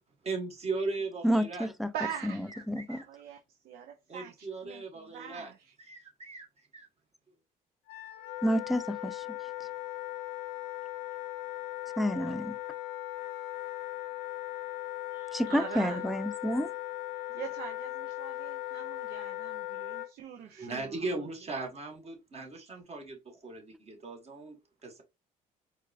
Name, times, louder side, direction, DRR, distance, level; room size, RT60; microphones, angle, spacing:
voice 1, 0.2-1.7 2.1-2.2 2.5-3.0 4.1-5.5 5.8-6.5 6.7-6.9 20.6-25.0, right 3 dB, 40° right, 1.5 m, -38 dB
voice 2, 1.2-1.9 2.7-3.0 8.4-9.2 12.0-12.5 15.3-16.7, equal, ahead, 0.4 m, -29 dB
voice 3, 1.9-2.5 2.9-3.4 3.6-5.7 15.1-16.0 17.3-21.3, right 9 dB, 75° right, 0.6 m, -43 dB
Wind instrument woodwind instrument, 7.9-20.1, left 16 dB, 90° left, 0.5 m, -38 dB
4.4 x 2.4 x 2.4 m
cardioid pair, 85°, 16 cm